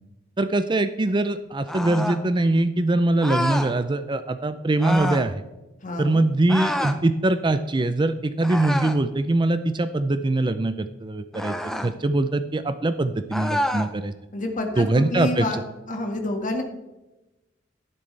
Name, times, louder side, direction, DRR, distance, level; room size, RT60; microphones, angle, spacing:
voice 1, 0.4-5.4 6.0-11.5 11.8-14.1 14.8-15.4, right 2 dB, 25° right, 11 dB, 0.5 m, -22 dB
sound 1, 1.7-2.2 3.2-3.7 4.8-5.3 6.5-7.0 8.4-9.1 11.3-11.9 13.3-13.9, left 1 dB, ahead, 0.7 m, -27 dB
voice 2, 5.8-6.2 14.3-15.6 15.9-16.6, left 2 dB, 45° left, 3 dB, 1.8 m, -28 dB
12.0 x 11.0 x 3.3 m, 1.0 s
head